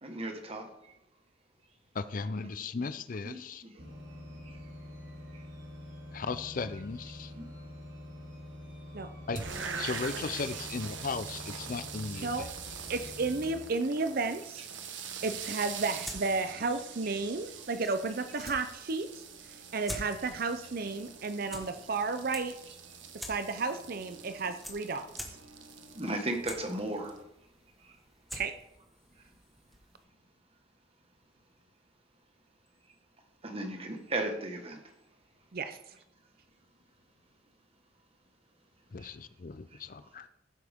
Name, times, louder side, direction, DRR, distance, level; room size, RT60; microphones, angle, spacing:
voice 1, 0.0-0.9 2.7-2.9 3.2-3.9 5.3-5.5 7.2-7.5 25.9-27.2 27.8-28.0 29.2-29.3 33.4-34.9 39.0-39.1 39.7-39.8, right 2 dB, 30° right, 4 dB, 1.5 m, -37 dB
voice 2, 1.9-3.6 6.1-7.3 9.3-9.4 9.7-12.5 38.9-40.3, left 4 dB, 45° left, 13 dB, 0.5 m, -36 dB
sound 1, 3.8-13.6, left 1 dB, 75° right, 3.6 m, -46 dB
sound 2, 9.4-27.2, right 6 dB, 90° right, 1.2 m, -44 dB
voice 3, 12.9-14.7 15.2-22.6 23.1-25.1 28.3-28.5 35.5-35.8, right 3 dB, 50° right, 9 dB, 0.6 m, -33 dB
sound 3, 15.7-30.0, equal, ahead, 1.4 m, -49 dB
15.0 x 8.0 x 3.6 m, 0.81 s
head